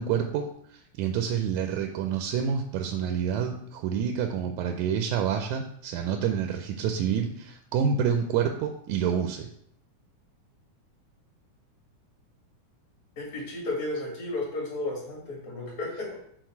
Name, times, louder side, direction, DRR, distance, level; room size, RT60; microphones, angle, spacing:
voice 1, 0.0-9.5, right 7 dB, 80° right, 5 dB, 1.9 m, -28 dB
voice 2, 13.2-16.1, left 2 dB, 45° left, -3 dB, 2.8 m, -33 dB
6.5 x 4.0 x 4.5 m, 0.69 s
omnidirectional pair, 3.6 m